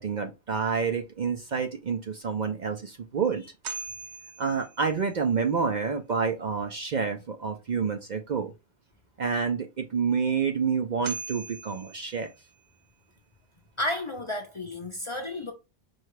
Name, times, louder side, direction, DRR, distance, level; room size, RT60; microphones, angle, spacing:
voice 1, 0.0-3.4 4.4-8.5 9.2-12.3, right 5 dB, 50° right, 0.6 m, -28 dB
sound 1, 2.2-2.3 2.8-2.9 3.6-5.3 10.4-10.5 11.0-12.7, right 5 dB, 80° right, 1.0 m, -41 dB
voice 2, 13.8-15.5, left 1 dB, 35° left, 0.6 m, -32 dB
4.5 x 2.3 x 4.5 m
omnidirectional pair, 1.1 m